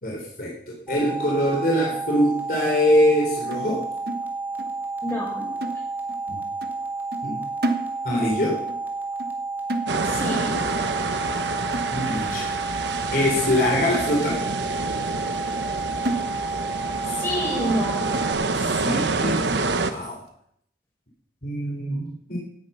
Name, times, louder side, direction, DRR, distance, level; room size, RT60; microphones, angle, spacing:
voice 1, 0.0-3.8 6.3-6.4 7.2-7.4 8.0-8.6 11.9-12.5 13.1-14.4 18.8-19.6 19.9-20.2 21.4-22.4, equal, 50° left, -2 dB, 3.6 m, -23 dB
sound 1, 0.9-18.3, right 3 dB, 10° right, 2.2 m, -31 dB
sound 2, 3.5-4.8 5.1-5.3 5.6-6.3 6.6-6.8 7.1-8.4 8.7-8.9 9.2-10.4 10.7-10.9 11.2-11.4 11.7-12.4 12.8-13.0 13.4-13.5 13.9-14.6 15.0-15.1 15.6-15.7 16.0-16.8 17.1-17.2 17.6-17.8 18.1-18.7 19.2-19.3 19.6-19.9, right 1 dB, 60° right, 1.3 m, -33 dB
voice 2, 5.0-5.5 10.0-10.6 17.1-18.1, equal, 15° left, -4 dB, 6.3 m, -28 dB
sound 3, 9.9-19.9, right 3 dB, 80° right, 1.1 m, -27 dB
17.5 x 9.5 x 5.7 m, 0.70 s
head